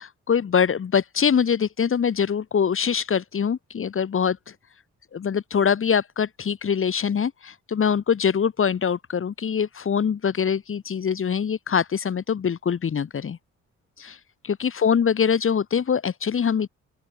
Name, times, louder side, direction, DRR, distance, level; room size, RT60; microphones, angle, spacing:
voice 1, 0.3-4.4 5.1-13.4 14.0-14.2 14.4-16.7, left 7 dB, 45° left, 2.3 m, -23 dB
open air
cardioid pair, 90°, 30 cm